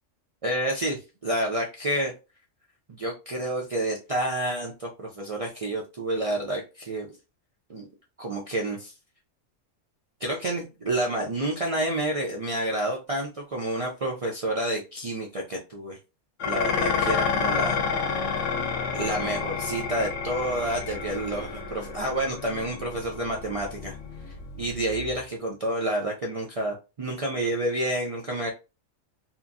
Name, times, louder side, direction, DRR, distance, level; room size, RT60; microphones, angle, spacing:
voice 1, 0.4-2.1 2.9-7.1 7.7-7.9 8.2-8.9 10.2-16.0 16.5-17.7 18.9-24.0 24.3-28.5, right 1 dB, 60° right, -1 dB, 0.3 m, -29 dB
Dishes pots and pans, 16.4-25.2, left 5 dB, 75° left, 0.9 m, -30 dB
2.8 x 2.5 x 2.4 m, 0.28 s
omnidirectional pair, 1.3 m